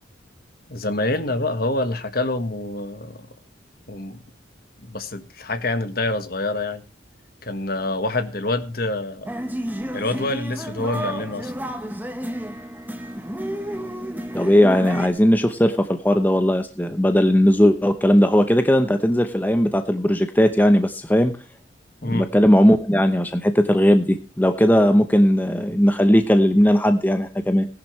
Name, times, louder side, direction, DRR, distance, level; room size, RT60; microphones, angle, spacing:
voice 1, 0.7-3.3 3.9-4.2 4.8-6.8 7.4-9.3 9.9-11.5 13.8-13.9 22.0-22.3, left 2 dB, 50° left, 9 dB, 1.4 m, -26 dB
sound 1, 9.2-15.1, equal, 10° right, 1.2 m, -31 dB
voice 2, 14.3-21.3 22.0-27.7, equal, 10° left, 7 dB, 0.8 m, -18 dB
18.0 x 10.5 x 3.2 m, 0.31 s
head